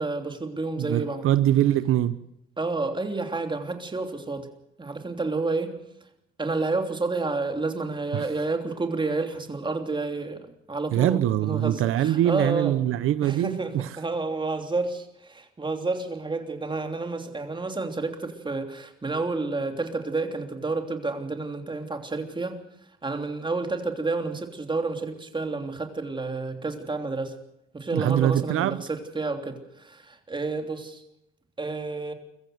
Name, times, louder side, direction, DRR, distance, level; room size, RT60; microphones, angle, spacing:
voice 1, 0.0-1.3 2.6-4.5 4.8-5.7 6.4-12.8 13.2-22.6 23.0-27.4 27.7-31.0 31.6-32.1, right 3 dB, 20° right, 3.1 m, -30 dB
voice 2, 0.8-2.2 8.1-8.3 10.9-13.9 27.9-28.8, right 12 dB, 80° right, 0.8 m, -23 dB
23.0 x 14.5 x 7.9 m
cardioid pair, 90°, 21 cm